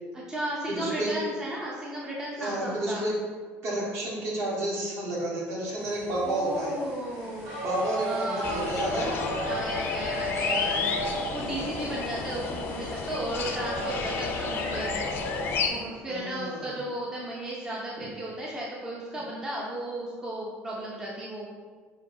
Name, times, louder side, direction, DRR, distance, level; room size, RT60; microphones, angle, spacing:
voice 1, 0.1-3.1 6.2-7.6 8.0-8.8 9.5-15.1 15.7-21.5, right 1 dB, 10° right, -5 dB, 0.5 m, -35 dB
voice 2, 0.7-1.1 2.4-3.1 3.6-6.7 7.6-9.1 16.1-16.8, right 1 dB, 55° right, -5 dB, 1.4 m, -30 dB
sound 1, 5.8-15.8, equal, 90° right, 1.2 m, -36 dB
sound 2, 8.4-15.7, left 5 dB, 45° left, 0.4 m, -31 dB
5.8 x 2.6 x 2.6 m, 1.5 s
cardioid pair, 155°, 5 cm